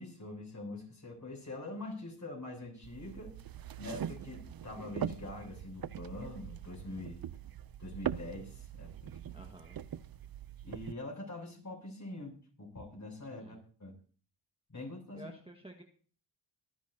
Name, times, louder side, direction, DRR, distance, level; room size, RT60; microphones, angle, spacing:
voice 1, 0.0-3.4 3.8-7.2 7.8-9.4 10.6-13.9 14.7-15.3, left 2 dB, 35° left, 0 dB, 7.9 m, -44 dB
sound 1, 2.8-10.9, right 10 dB, 50° right, 0.6 m, -42 dB
voice 2, 9.3-9.8 13.4-13.6 15.1-15.8, right 1 dB, 10° right, 2 dB, 1.7 m, -51 dB
23.5 x 10.0 x 2.8 m, 0.41 s
cardioid pair, 55°, 47 cm